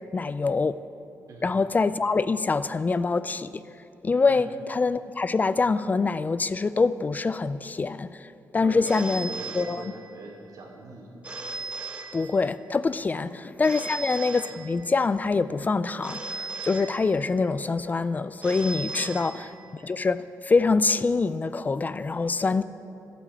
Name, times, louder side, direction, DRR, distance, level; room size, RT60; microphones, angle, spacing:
voice 1, 0.1-0.8 1.4-3.6 4.0-9.9 12.1-22.6, left 4 dB, 25° left, 0.3 m, -25 dB
voice 2, 8.6-11.2 13.1-13.3 13.8-14.0 18.9-19.3 22.4-22.6, right 3 dB, 75° right, 2.7 m, -43 dB
Telephone, 8.8-10.3 11.2-12.7 13.6-15.1 16.0-17.5 18.4-19.9, right 3 dB, 20° right, 1.5 m, -38 dB
12.5 x 8.4 x 8.4 m
cardioid pair, 110°, 6 cm